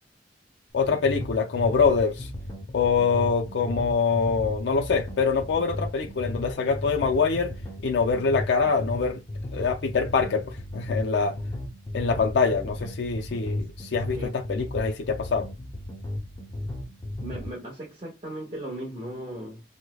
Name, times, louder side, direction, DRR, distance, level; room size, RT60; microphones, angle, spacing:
voice 1, 0.7-2.3 2.7-7.5 7.8-9.2 9.5-11.4 11.9-15.5, left 5 dB, 75° left, 0.4 m, -24 dB
sound 1, 0.7-17.5, left 1 dB, 25° left, 0.6 m, -36 dB
voice 2, 17.2-19.6, right 1 dB, 30° right, 0.9 m, -37 dB
4.7 x 2.1 x 2.2 m
head